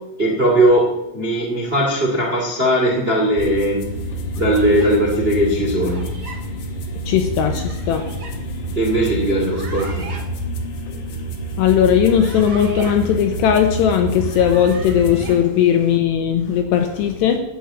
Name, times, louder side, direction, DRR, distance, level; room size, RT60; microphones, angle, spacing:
voice 1, 0.2-3.8 4.4-6.0 8.7-10.1, right 1 dB, 75° right, 0 dB, 0.5 m, -18 dB
sound 1, 3.4-15.4, right 1 dB, 60° left, 2.1 m, -28 dB
sound 2, 4.3-4.9 5.8-6.4 7.5-8.3 9.3-10.2 11.9-13.0 14.1-15.4, right 3 dB, 45° right, 2.1 m, -39 dB
voice 2, 7.1-8.1 11.6-17.4, left 9 dB, 80° left, 6 dB, 2.6 m, -17 dB
13.0 x 7.3 x 8.7 m, 0.88 s
omnidirectional pair, 5.9 m